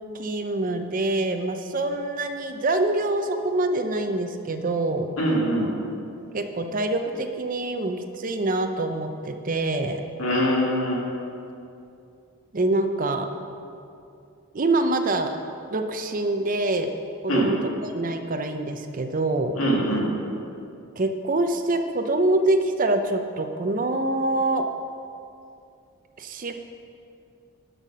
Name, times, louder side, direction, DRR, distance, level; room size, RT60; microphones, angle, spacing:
voice 1, 0.1-5.1 6.3-10.0 12.5-13.3 14.5-15.4 15.7-16.9 17.2-17.6 17.9-19.5 21.0-24.6 26.2-26.5, right 2 dB, 40° right, 7 dB, 0.6 m, -25 dB
voice 2, 5.2-5.7 10.2-11.0 17.3-17.5 19.5-20.1, equal, 65° left, -3 dB, 2.2 m, -23 dB
12.0 x 5.7 x 6.2 m, 2.6 s
head